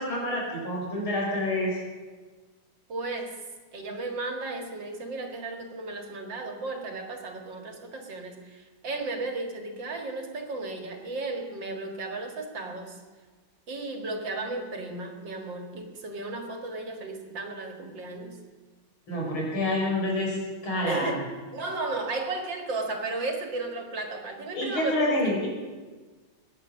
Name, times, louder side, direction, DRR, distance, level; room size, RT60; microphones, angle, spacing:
voice 1, 0.0-1.8 19.1-20.4 20.6-21.2 24.5-25.5, left 1 dB, 85° left, -3 dB, 5.9 m, -27 dB
voice 2, 2.9-3.4 3.7-13.0 13.7-18.4 20.8-21.2 21.5-25.2, right 3 dB, 65° right, 4 dB, 2.5 m, -34 dB
22.5 x 9.8 x 6.3 m, 1.4 s
omnidirectional pair, 2.2 m